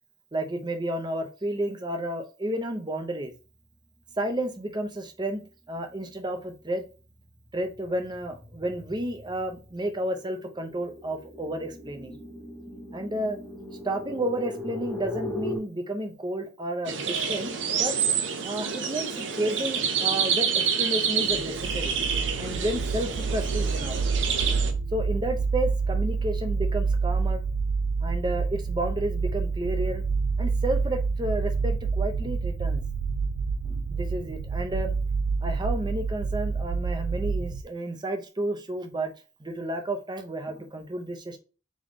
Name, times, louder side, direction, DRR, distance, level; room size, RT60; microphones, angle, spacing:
voice 1, 0.3-3.3 4.2-6.8 7.5-12.2 12.9-13.4 13.8-22.0 22.4-24.0 24.9-27.4 28.0-30.0 30.4-32.8 33.6-34.9 35.4-39.1 39.4-41.4, right 1 dB, 25° right, 5 dB, 0.7 m, -31 dB
sound 1, 5.9-6.3 6.7-15.6, left 1 dB, 10° left, 1.0 m, -39 dB
sound 2, 16.9-24.7, right 7 dB, 85° right, 0.7 m, -28 dB
sound 3, 21.3-37.6, right 4 dB, 65° right, 0.3 m, -28 dB
3.7 x 3.1 x 3.6 m, 0.33 s
head